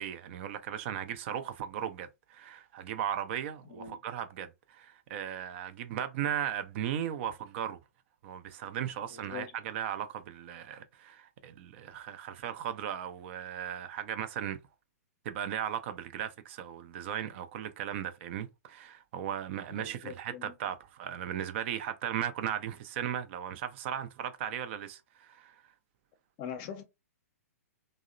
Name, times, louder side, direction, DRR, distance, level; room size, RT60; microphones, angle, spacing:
voice 1, 0.0-7.8 8.2-14.6 15.2-25.6, right 10 dB, 50° right, 0.5 m, -37 dB
voice 2, 9.1-9.5 19.7-20.5 26.4-26.8, left 7 dB, 40° left, 0.6 m, -42 dB
2.7 x 2.0 x 2.5 m
hypercardioid pair, 120°, 9 cm